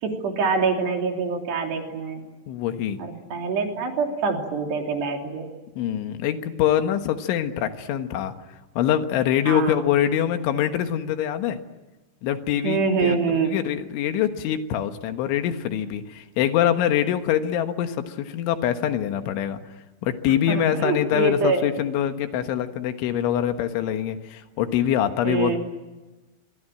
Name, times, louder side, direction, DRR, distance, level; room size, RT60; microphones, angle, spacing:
voice 1, 0.0-2.2 3.0-5.5 9.5-9.8 12.6-13.5 20.5-21.6 25.2-25.6, right 5 dB, 60° right, 3 dB, 5.1 m, -25 dB
voice 2, 2.5-3.0 5.8-8.3 8.8-11.6 12.2-19.6 20.0-25.6, left 10 dB, 80° left, 8 dB, 3.8 m, -24 dB
26.5 x 23.0 x 8.9 m, 1.2 s
omnidirectional pair, 5.5 m